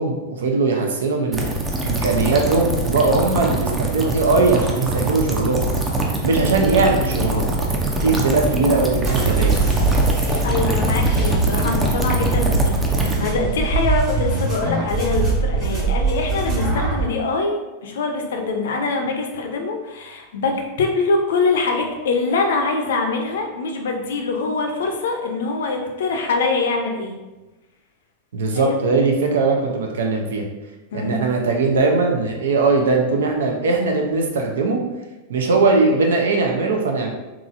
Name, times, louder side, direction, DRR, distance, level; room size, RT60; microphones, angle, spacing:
voice 1, 0.0-1.5 1.8-5.7 6.2-7.6 8.0-9.6 28.3-30.4 30.9-34.8 35.3-37.1, right 3 dB, 60° right, 2 dB, 0.6 m, -20 dB
sound 1, 1.3-13.2, right 2 dB, 15° right, 0.6 m, -23 dB
sound 2, 9.0-17.1, right 3 dB, 35° right, 1.4 m, -22 dB
voice 2, 10.4-27.2 28.5-28.8 30.9-31.2, left 3 dB, 60° left, 3 dB, 0.5 m, -24 dB
3.7 x 3.0 x 2.5 m, 1.1 s
figure-of-eight pair, 90°, 0 cm